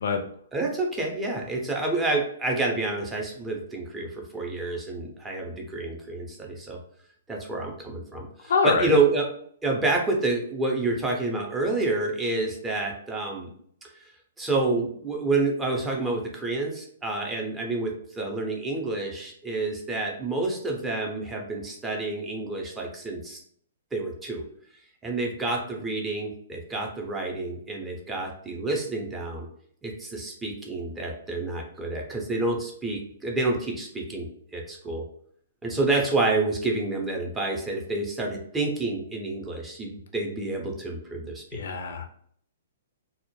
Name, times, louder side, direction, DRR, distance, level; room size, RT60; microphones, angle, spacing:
voice 1, 0.5-6.8 7.3-9.3 9.6-13.5 14.4-23.4 23.9-24.4 25.0-29.5 29.8-34.3 34.5-35.0 35.6-41.6, right 2 dB, 15° right, 0 dB, 0.5 m, -28 dB
voice 2, 8.5-9.0 41.5-42.1, left 5 dB, 65° left, 4 dB, 0.4 m, -24 dB
2.1 x 2.0 x 3.0 m, 0.63 s
figure-of-eight pair, 120°, 0 cm